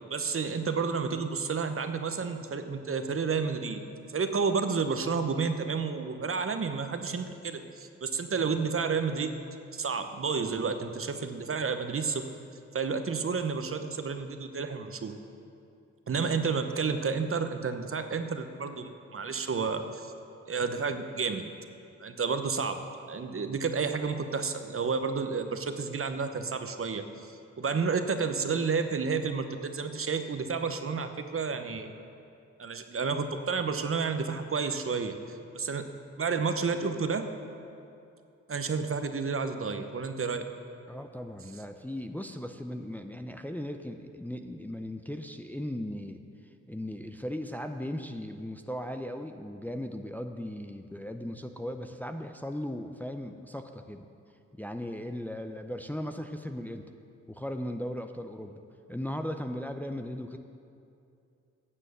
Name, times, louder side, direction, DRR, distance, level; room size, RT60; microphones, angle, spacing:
voice 1, 0.1-3.8 4.1-9.3 9.7-12.3 12.7-15.2 16.1-20.1 20.5-21.5 22.0-31.9 32.6-35.9 36.2-37.3 38.5-40.5, right 5 dB, 45° right, 8 dB, 0.9 m, -31 dB
voice 2, 40.9-46.2 46.7-54.1 54.5-56.8 57.3-58.6 58.9-60.4, left 1 dB, 5° left, 6 dB, 0.6 m, -37 dB
9.8 x 7.5 x 6.8 m, 2.6 s
supercardioid pair, 45°, 31 cm